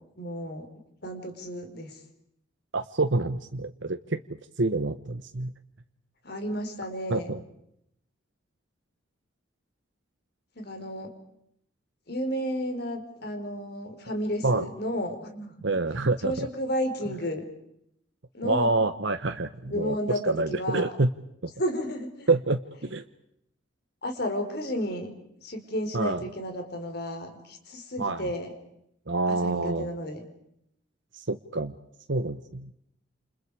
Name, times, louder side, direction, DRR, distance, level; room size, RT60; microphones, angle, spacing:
voice 1, 0.2-0.7 1.0-2.0 6.2-7.3 10.5-11.1 12.1-15.5 16.2-17.4 18.3-18.7 19.6-20.9 21.6-22.3 24.0-25.1 25.4-28.5 29.3-30.2, equal, 55° left, 5 dB, 4.5 m, -32 dB
voice 2, 2.7-4.2 4.6-5.5 7.1-7.4 14.4-14.6 15.6-16.5 18.4-20.0 20.3-21.1 21.4-21.5 22.3-23.0 25.9-26.2 28.0-28.3 29.1-29.9 31.1-31.7 32.1-32.7, right 3 dB, 70° right, 7 dB, 1.1 m, -27 dB
29.5 x 29.0 x 5.0 m, 0.76 s
head